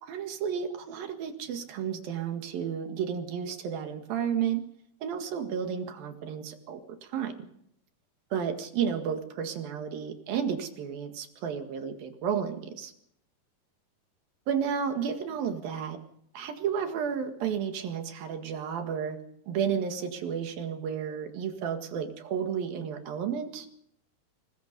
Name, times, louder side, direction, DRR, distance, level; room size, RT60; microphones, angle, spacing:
voice 1, 0.0-4.6 5.0-7.3 8.3-12.9 14.5-16.0 16.3-19.2 19.5-23.8, right 7 dB, 90° right, 6 dB, 3.7 m, -32 dB
24.0 x 20.5 x 5.3 m, 0.72 s
omnidirectional pair, 4.0 m